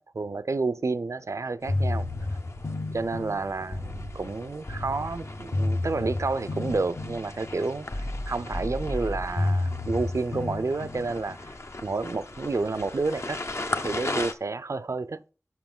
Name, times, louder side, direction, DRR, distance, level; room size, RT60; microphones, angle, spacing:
voice 1, 0.0-2.1 2.9-11.4 11.8-13.4 13.8-15.2, right 3 dB, 70° right, 0.4 m, -30 dB
sound 1, 1.6-14.3, left 2 dB, 60° left, 0.7 m, -39 dB
sound 2, 1.7-11.5, left 2 dB, 85° left, 1.0 m, -31 dB
7.1 x 6.0 x 3.7 m
wide cardioid pair, 45°, 5 cm